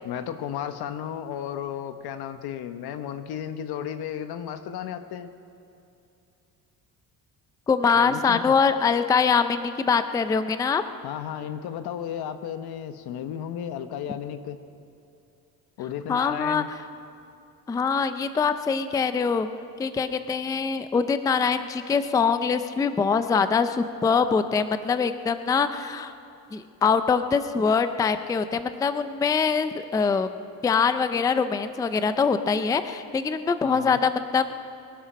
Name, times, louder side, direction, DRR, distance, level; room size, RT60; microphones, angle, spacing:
voice 1, 0.0-5.3 8.0-8.6 11.0-14.6 15.8-16.7 33.6-34.0, left 9 dB, 85° left, 9 dB, 1.1 m, -34 dB
voice 2, 7.7-10.8 16.1-16.6 17.7-19.5 19.8-26.1 26.5-30.3 30.6-34.5, left 5 dB, 10° left, 10 dB, 0.3 m, -23 dB
23.0 x 11.5 x 5.1 m, 2.7 s
cardioid pair, 160°, 37 cm